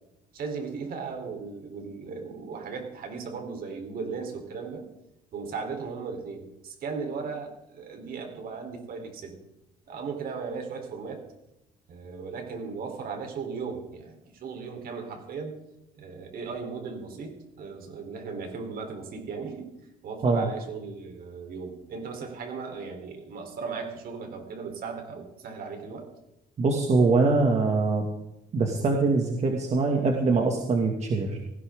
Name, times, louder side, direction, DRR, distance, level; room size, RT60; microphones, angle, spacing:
voice 1, 0.3-4.8 5.3-9.4 9.9-11.2 11.9-15.6 16.0-19.7 20.0-26.1, right 5 dB, 60° right, 4 dB, 3.9 m, -37 dB
voice 2, 26.6-28.1 28.5-31.4, right 3 dB, 40° right, 1 dB, 2.3 m, -23 dB
18.5 x 16.0 x 3.8 m, 0.88 s
cardioid pair, 110°, 17 cm